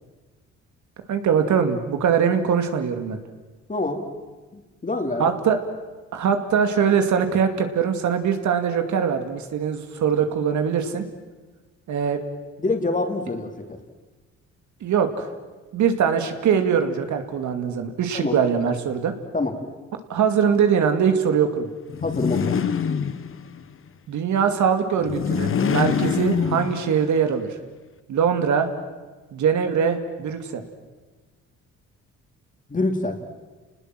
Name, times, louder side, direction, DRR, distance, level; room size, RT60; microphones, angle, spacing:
voice 1, 1.1-3.2 5.2-5.6 6.1-11.0 11.9-12.2 14.8-15.3 15.7-19.1 20.1-21.7 24.1-27.5 28.1-28.7 29.3-30.6, right 7 dB, 70° right, 7 dB, 2.4 m, -22 dB
voice 2, 3.7-4.0 4.5-5.3 12.6-13.8 18.1-18.4 19.3-19.5 22.0-22.5 32.7-33.2, left 2 dB, 25° left, 5 dB, 3.4 m, -26 dB
sound 1, 21.9-23.6 25.0-27.2, left 6 dB, 45° left, 1.4 m, -25 dB
29.0 x 19.5 x 7.6 m, 1.3 s
cardioid pair, 90°, 30 cm